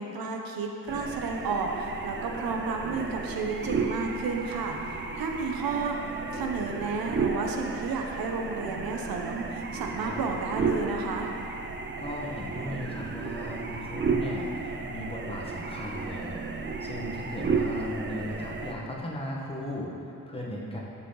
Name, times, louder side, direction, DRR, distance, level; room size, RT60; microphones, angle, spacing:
voice 1, 0.0-6.0 6.3-11.3, right 4 dB, 90° right, 2 dB, 1.0 m, -32 dB
sound 1, 0.9-18.7, right 4 dB, 35° right, 0.6 m, -33 dB
voice 2, 12.0-20.8, left 1 dB, 15° left, -3 dB, 1.4 m, -37 dB
13.0 x 6.6 x 4.0 m, 2.7 s
wide cardioid pair, 145°, 34 cm